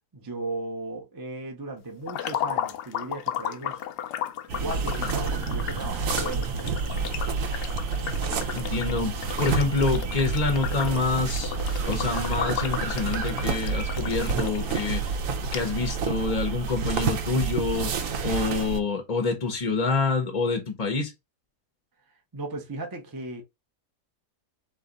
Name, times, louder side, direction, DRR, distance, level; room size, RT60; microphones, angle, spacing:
voice 1, 0.1-3.8 4.6-7.2 22.3-23.4, right 2 dB, 25° right, 0.4 m, -36 dB
sound 1, 2.1-14.8 15.2-15.3 15.5-15.6, left 10 dB, 90° left, 1.2 m, -34 dB
sound 2, 4.5-18.8, right 5 dB, 60° right, 1.1 m, -29 dB
voice 2, 8.5-11.5 11.9-15.1 15.5-21.1, left 4 dB, 40° left, 0.6 m, -27 dB
3.5 x 3.2 x 3.9 m
omnidirectional pair, 1.7 m